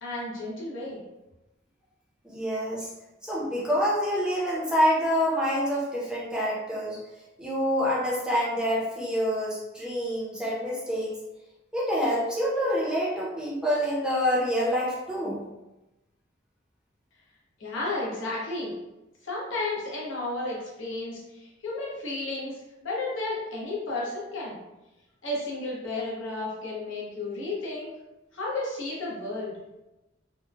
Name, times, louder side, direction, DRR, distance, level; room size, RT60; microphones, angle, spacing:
voice 1, 0.0-1.0 17.6-18.7 19.2-24.6 25.2-27.9 28.3-29.5, left 2 dB, 80° left, -5 dB, 0.9 m, -33 dB
voice 2, 2.2-2.9 3.2-7.0 7.4-11.2 11.7-15.4, equal, 5° right, -6 dB, 0.6 m, -27 dB
3.0 x 2.0 x 2.2 m, 0.99 s
head